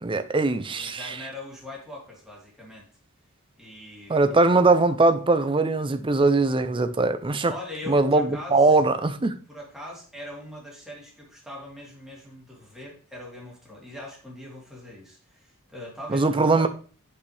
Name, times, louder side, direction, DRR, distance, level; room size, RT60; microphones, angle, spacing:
voice 1, 0.0-1.1 4.1-7.5 7.9-9.4 16.1-16.7, right 3 dB, 25° right, 0.6 m, -21 dB
voice 2, 0.6-2.9 3.6-4.4 7.5-8.8 9.5-16.7, left 1 dB, ahead, 2.8 m, -41 dB
8.4 x 5.5 x 3.4 m
head